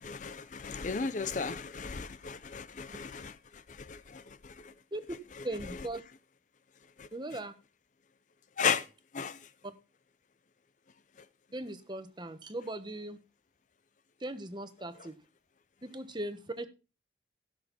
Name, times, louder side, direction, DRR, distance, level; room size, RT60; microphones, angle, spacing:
voice 1, 0.0-4.7 7.0-7.1 8.6-8.9 9.1-9.4, left 6 dB, 40° left, 0.5 m, -35 dB
voice 2, 5.4-6.0 7.1-7.5 9.6-9.7 11.5-13.2 14.2-15.2 15.8-16.7, right 1 dB, 25° right, 1.2 m, -39 dB
16.5 x 6.5 x 4.2 m
head